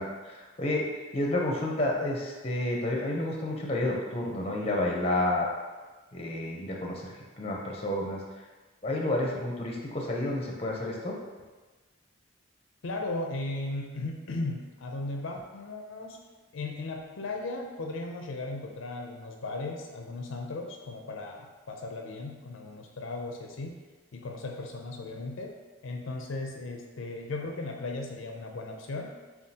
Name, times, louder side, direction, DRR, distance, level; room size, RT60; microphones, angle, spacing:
voice 1, 0.0-5.5 6.1-8.2 8.8-11.1, left 1 dB, 30° left, -1 dB, 0.6 m, -30 dB
voice 2, 12.8-16.2 16.5-23.8 24.1-25.5 25.8-29.1, left 2 dB, 80° left, 2 dB, 0.5 m, -36 dB
7.1 x 2.4 x 2.8 m, 1.3 s
head